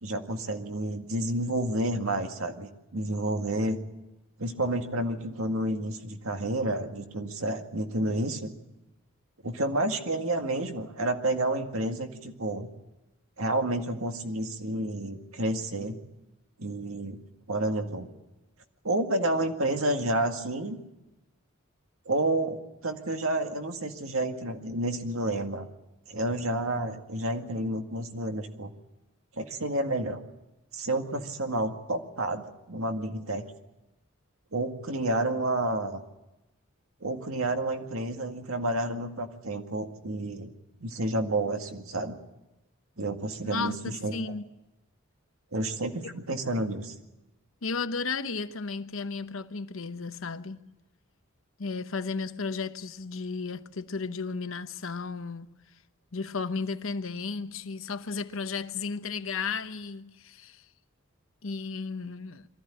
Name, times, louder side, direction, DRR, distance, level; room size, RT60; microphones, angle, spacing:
voice 1, 0.0-3.8 4.4-8.5 9.4-12.7 13.4-16.0 16.6-17.2 17.5-18.1 18.8-20.8 22.1-25.7 26.1-28.7 29.4-30.2 30.7-33.4 34.5-36.0 37.0-40.5 40.8-42.2 43.0-44.2 45.5-46.9, right 1 dB, 85° right, 2.0 m, -30 dB
voice 2, 43.4-44.5 46.0-46.1 47.6-50.7 51.6-55.5 56.1-60.7 61.4-62.5, left 4 dB, 70° left, 1.0 m, -34 dB
23.0 x 14.5 x 10.0 m
head